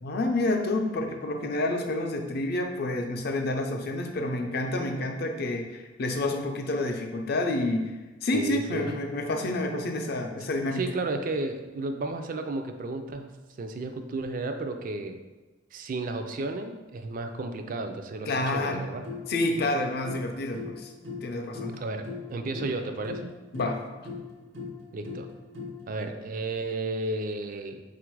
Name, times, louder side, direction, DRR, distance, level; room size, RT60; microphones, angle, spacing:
voice 1, 0.0-7.9 8.2-10.8 18.3-18.8 19.3-20.9 21.2-21.8 23.5-23.8, left 2 dB, 60° left, 4 dB, 0.5 m, -29 dB
voice 2, 8.3-8.9 10.3-13.3 13.6-15.2 15.7-19.1 21.8-22.0 22.3-23.3 24.9-25.3 25.9-27.8, right 2 dB, 50° right, 6 dB, 0.4 m, -33 dB
sound 1, 18.7-26.0, left 4 dB, 90° right, 0.8 m, -41 dB
3.8 x 2.5 x 4.6 m, 1.2 s
head